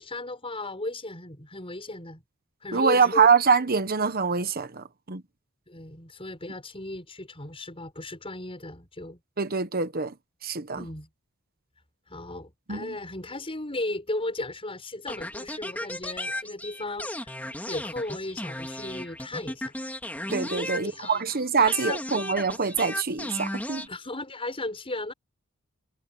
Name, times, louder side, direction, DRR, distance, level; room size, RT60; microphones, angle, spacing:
voice 1, 0.0-2.2 2.6-3.3 5.7-9.2 10.7-11.1 12.1-17.3 17.7-19.7 20.5-22.0 23.9-25.1, left 2 dB, 25° left, 6.5 m, -36 dB
voice 2, 2.7-5.2 9.4-10.1 10.4-10.9 12.7-13.0 20.3-23.9, right 5 dB, 45° right, 1.2 m, -24 dB
sound 1, 15.1-21.3 21.7-23.9, left 1 dB, 5° left, 2.6 m, -35 dB
head